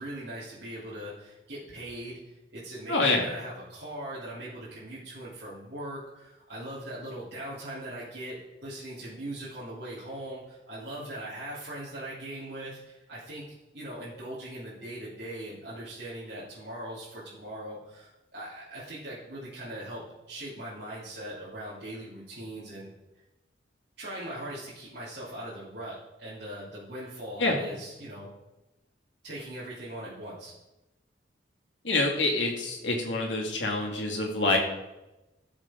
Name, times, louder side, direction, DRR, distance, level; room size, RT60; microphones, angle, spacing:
voice 1, 0.0-22.9 24.0-28.3 29.2-30.5, right 1 dB, 60° right, -11 dB, 3.3 m, -40 dB
voice 2, 2.9-3.2 27.4-27.6 31.8-34.6, left 2 dB, 90° left, 0 dB, 2.4 m, -26 dB
15.5 x 7.3 x 3.8 m, 1.0 s
head